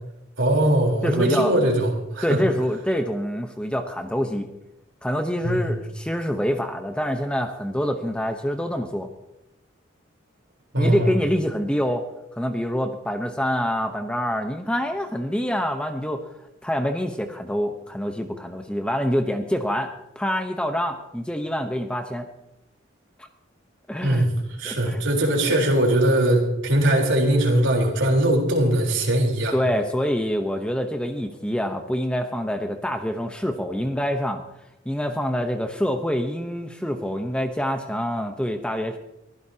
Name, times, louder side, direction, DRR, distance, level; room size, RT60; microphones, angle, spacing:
voice 1, 0.4-2.4 5.4-5.8 10.7-11.1 24.0-24.3 24.6-29.5, right 1 dB, 65° right, 0 dB, 4.0 m, -21 dB
voice 2, 1.0-1.5 2.2-4.5 5.0-9.1 10.8-12.0 12.3-16.3 16.6-22.3 23.9-24.2 24.6-25.0 29.5-34.4 34.8-39.0, equal, 5° left, 5 dB, 0.9 m, -26 dB
23.0 x 15.5 x 2.9 m, 0.87 s
head